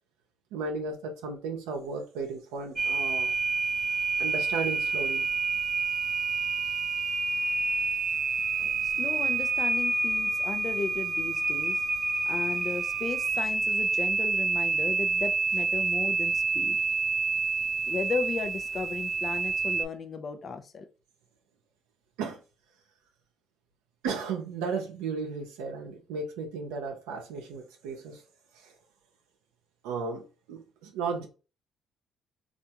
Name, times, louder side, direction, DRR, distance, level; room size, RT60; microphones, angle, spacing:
voice 1, 0.5-3.3 4.2-5.3 8.6-8.8 22.2-22.4 24.0-28.2 28.5-28.8 29.8-31.3, right 4 dB, 90° right, 0.6 m, -35 dB
sound 1, 2.8-19.8, right 4 dB, 35° right, 0.3 m, -28 dB
voice 2, 8.8-11.8 12.2-16.8 17.9-20.9, left 4 dB, 50° left, 0.5 m, -35 dB
3.4 x 2.5 x 2.8 m
supercardioid pair, 70°, 0 cm